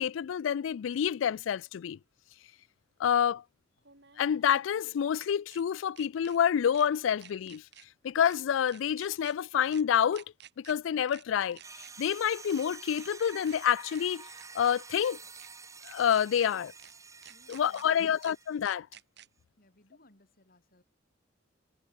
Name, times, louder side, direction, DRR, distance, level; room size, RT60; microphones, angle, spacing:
voice 1, 0.0-2.0 3.0-3.4 4.2-7.6 8.0-10.2 10.6-11.6 12.0-14.3 14.5-15.2 15.8-16.7 17.5-18.9, left 8 dB, 80° left, 0.3 m, -28 dB
sound 1, 1.3-1.4 3.8-5.6 6.0-6.4 6.7-6.9 7.2-7.9 8.2-8.4 8.7-9.3 9.7-9.8 10.1-10.7 11.1-11.2 11.5-12.2 12.5-12.6 12.9-13.6 13.9-14.0 14.3-15.0 15.4-15.5 15.8-16.5 16.8-16.9 17.2-17.8 18.2-18.3 18.6-19.3, right 10 dB, 60° right, 7.9 m, -53 dB
sound 2, 11.6-18.6, right 5 dB, 15° right, 0.6 m, -49 dB
voice 2, 17.3-18.3 19.6-20.8, left 1 dB, 50° left, 4.6 m, -64 dB
head